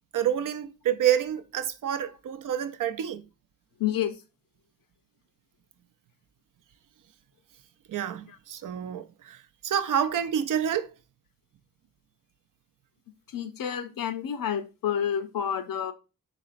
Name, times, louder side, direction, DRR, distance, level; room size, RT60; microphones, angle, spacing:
voice 1, 0.1-3.2 7.9-9.4 9.6-10.9, right 9 dB, 65° right, 0.5 m, -28 dB
voice 2, 3.8-4.1 8.3-8.4 13.3-15.9, left 9 dB, 75° left, 0.6 m, -29 dB
4.2 x 3.8 x 2.5 m
wide cardioid pair, 125°, 35 cm